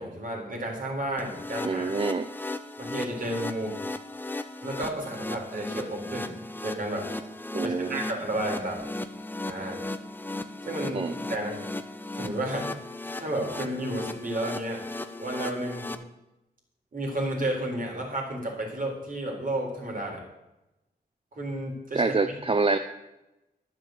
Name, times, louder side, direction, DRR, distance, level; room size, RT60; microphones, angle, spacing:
voice 1, 0.0-2.0 2.8-3.7 4.6-6.3 6.6-7.1 7.6-8.9 9.5-9.8 10.7-11.6 12.1-12.7 13.2-14.8 15.2-15.9 16.9-20.2 21.4-22.1, right 1 dB, 55° right, 0 dB, 3.9 m, -32 dB
sound 1, 1.2-16.0, left 2 dB, 10° left, 0.9 m, -36 dB
voice 2, 1.6-2.3 7.5-8.0 10.9-11.1 21.9-22.8, right 3 dB, 35° right, 9 dB, 0.6 m, -26 dB
11.0 x 7.2 x 7.7 m, 0.96 s
cardioid pair, 70°, 17 cm